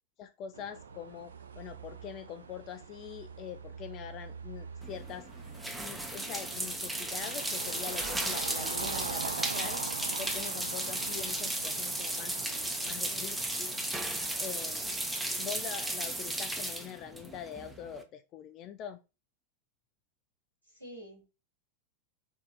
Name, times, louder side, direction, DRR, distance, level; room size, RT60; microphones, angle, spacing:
voice 1, 0.2-5.3 5.7-9.8 10.2-13.7 14.4-15.0 15.4-19.0, left 9 dB, 35° left, 0.3 m, -44 dB
sound 1, 0.5-16.2, right 6 dB, 65° right, 0.3 m, -44 dB
sound 2, 4.8-18.0, right 1 dB, 5° right, 0.6 m, -35 dB
voice 2, 13.0-13.4 20.6-21.3, right 1 dB, 85° right, 1.8 m, -49 dB
3.6 x 2.4 x 3.8 m
figure-of-eight pair, 90°, 0 cm